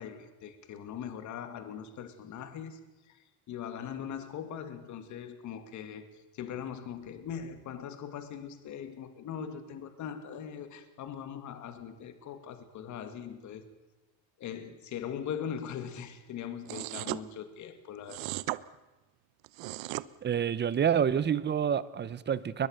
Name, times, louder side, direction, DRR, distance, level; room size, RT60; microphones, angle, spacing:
voice 1, 0.0-2.8 3.0-13.7 14.4-18.4, left 8 dB, 50° left, 9 dB, 2.4 m, -41 dB
sound 1, 16.7-17.2 18.1-18.6 19.4-20.1, right 20 dB, 75° right, 0.9 m, -36 dB
voice 2, 20.2-22.7, right 8 dB, 30° right, 18 dB, 0.9 m, -28 dB
21.5 x 21.5 x 6.6 m, 1.1 s
cardioid pair, 135°, 36 cm